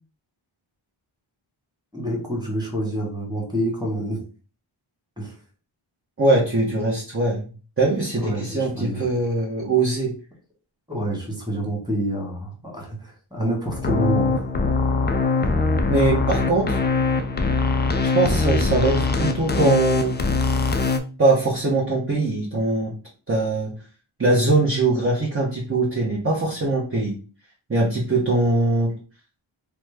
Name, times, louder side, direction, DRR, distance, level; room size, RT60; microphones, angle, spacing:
voice 1, 1.9-4.2 5.2-5.3 8.2-9.0 10.9-14.4, right 1 dB, 10° right, -2 dB, 1.5 m, -27 dB
voice 2, 6.2-7.5 7.8-10.1 15.9-16.8 18.1-20.2 21.2-22.9 23.3-23.7 24.2-27.2 27.7-28.9, right 2 dB, 25° right, -4 dB, 0.8 m, -21 dB
sound 1, 13.7-21.0, left 3 dB, 25° left, 0.3 m, -22 dB
3.0 x 2.1 x 3.4 m, 0.38 s
cardioid pair, 50°, 49 cm